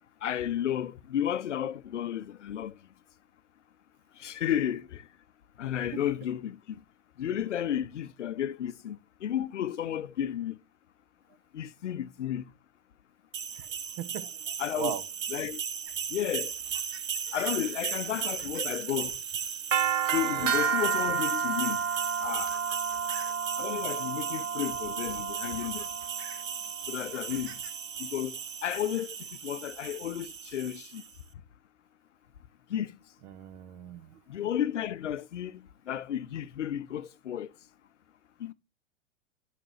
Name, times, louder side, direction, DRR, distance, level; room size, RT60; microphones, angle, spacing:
voice 1, 0.2-2.7 4.2-5.0 5.6-6.6 7.2-10.6 11.5-12.4 14.6-15.0 15.3-15.6 16.1-16.5 17.3-19.1 20.1-21.8 22.2-22.5 23.6-25.8 26.9-27.5 28.0-28.4 28.6-29.1 29.4-31.0 32.7-32.9 34.3-37.5 38.4-38.5, left 10 dB, 65° left, 0.7 m, -32 dB
sound 1, 13.3-31.1, right 7 dB, 75° right, 0.7 m, -33 dB
voice 2, 14.0-15.0 20.2-20.5 33.2-34.2, right 10 dB, 35° right, 0.9 m, -39 dB
sound 2, 15.9-21.4 22.1-23.4 24.6-24.7 25.1-27.7 28.0-28.7, right 5 dB, 55° right, 1.7 m, -51 dB
11.0 x 6.0 x 3.1 m
figure-of-eight pair, 105°, 39 cm